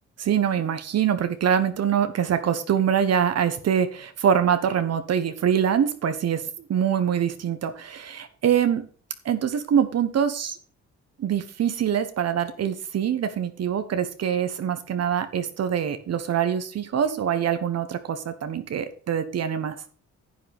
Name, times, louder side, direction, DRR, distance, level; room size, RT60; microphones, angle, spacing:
voice 1, 0.2-8.8 9.2-10.6 11.2-19.8, right 8 dB, 55° right, 9 dB, 1.1 m, -24 dB
10.5 x 8.7 x 3.5 m, 0.41 s
cardioid pair, 90°, 30 cm